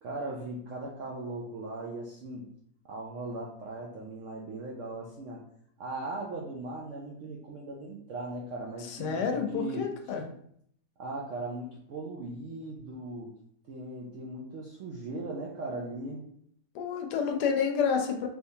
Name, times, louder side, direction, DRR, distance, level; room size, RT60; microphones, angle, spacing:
voice 1, 0.0-2.4 2.9-5.4 5.8-9.8 11.0-13.3 13.7-16.2, right 2 dB, 75° right, -2 dB, 0.7 m, -38 dB
voice 2, 8.8-10.2 16.7-18.3, left 6 dB, 80° left, 4 dB, 1.2 m, -29 dB
3.4 x 2.9 x 2.7 m, 0.68 s
omnidirectional pair, 1.8 m